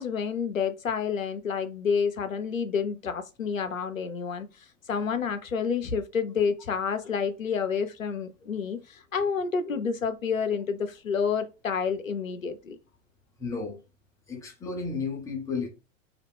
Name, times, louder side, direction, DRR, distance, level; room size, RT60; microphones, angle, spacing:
voice 1, 0.0-12.8, left 6 dB, 90° left, 0.5 m, -29 dB
voice 2, 13.4-13.8 14.3-15.7, left 4 dB, 10° left, 0.5 m, -33 dB
2.4 x 2.1 x 3.4 m
figure-of-eight pair, 95°, 39 cm